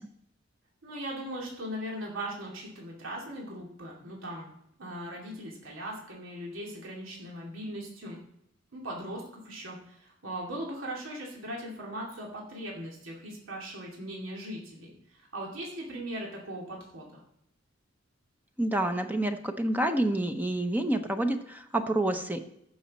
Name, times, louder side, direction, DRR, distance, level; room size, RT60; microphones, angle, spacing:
voice 1, 0.8-4.5 4.8-8.2 8.7-17.2, right 1 dB, 90° right, -2 dB, 2.5 m, -39 dB
voice 2, 18.6-22.4, right 1 dB, 10° right, 6 dB, 0.7 m, -28 dB
15.5 x 6.3 x 4.2 m, 0.78 s
head